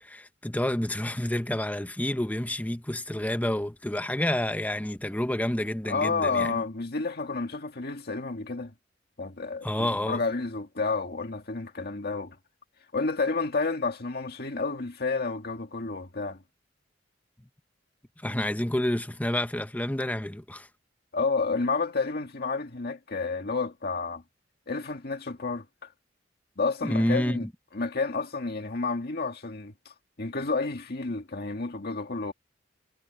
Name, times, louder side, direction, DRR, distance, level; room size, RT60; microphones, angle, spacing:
voice 1, 0.0-6.6 9.6-10.2 18.2-20.7 26.8-27.5, left 1 dB, 10° left, 0.8 m, -29 dB
voice 2, 5.9-8.7 9.2-12.4 12.9-16.4 21.1-24.2 24.7-25.9 26.6-27.5 27.7-32.3, left 4 dB, 55° left, 1.9 m, -30 dB
head